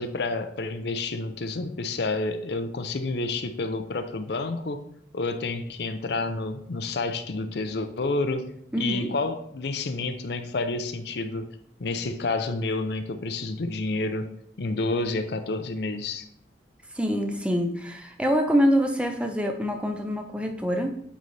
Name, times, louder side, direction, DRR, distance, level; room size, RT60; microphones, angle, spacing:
voice 1, 0.0-4.8 5.1-8.5 8.8-11.5 11.8-16.3, left 3 dB, 60° left, 9 dB, 0.5 m, -29 dB
voice 2, 8.7-9.1 16.9-21.0, equal, 5° right, 4 dB, 0.6 m, -25 dB
9.0 x 4.0 x 3.3 m, 0.70 s
head